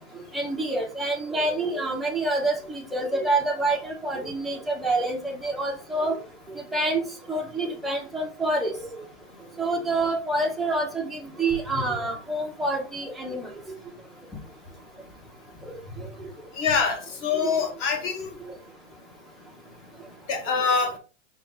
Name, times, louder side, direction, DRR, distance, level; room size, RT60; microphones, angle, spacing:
voice 1, 0.3-6.2 6.7-7.0 7.3-9.0 9.6-13.5 15.6-15.7, right 2 dB, ahead, -2 dB, 0.5 m, -27 dB
voice 2, 16.6-18.3 20.3-20.9, left 5 dB, 35° left, 4 dB, 1.2 m, -25 dB
5.0 x 2.3 x 3.7 m, 0.36 s
hypercardioid pair, 130°, 39 cm